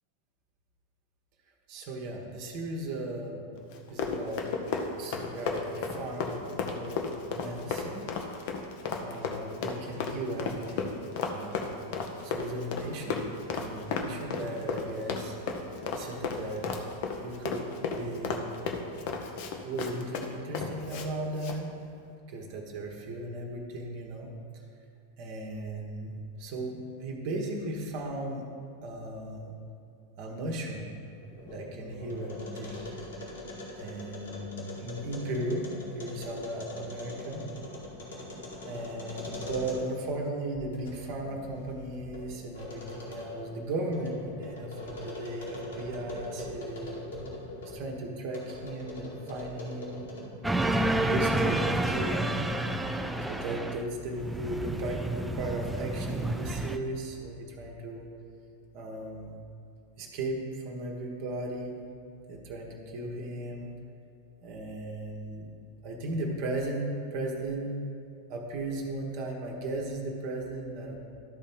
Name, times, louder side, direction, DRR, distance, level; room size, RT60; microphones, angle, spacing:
voice 1, 1.7-3.4 3.9-4.5 5.0-8.1 9.0-10.9 11.2-11.6 12.2-15.3 15.9-16.7 17.2-18.5 19.6-21.7 22.3-24.6 25.2-28.5 28.8-29.5 30.2-30.9 31.4-32.8 33.7-35.7 35.9-37.4 38.6-47.0 47.6-50.1 50.9-52.5 53.3-58.0 58.7-59.4 60.0-61.7 62.3-63.7 64.4-65.5 65.8-67.7 68.3-71.0, right 1 dB, 45° right, 1 dB, 1.2 m, -36 dB
Run, 3.7-21.1 21.4-21.6, left 5 dB, 50° left, 0.8 m, -34 dB
sound 1, 31.1-40.1 40.5-47.8 48.3-50.4, left 1 dB, 65° left, 2.0 m, -42 dB
sound 2, 50.4-53.8 54.1-56.8, right 1 dB, 5° right, 0.4 m, -29 dB
12.0 x 4.2 x 5.4 m, 2.6 s
figure-of-eight pair, 90°, 0 cm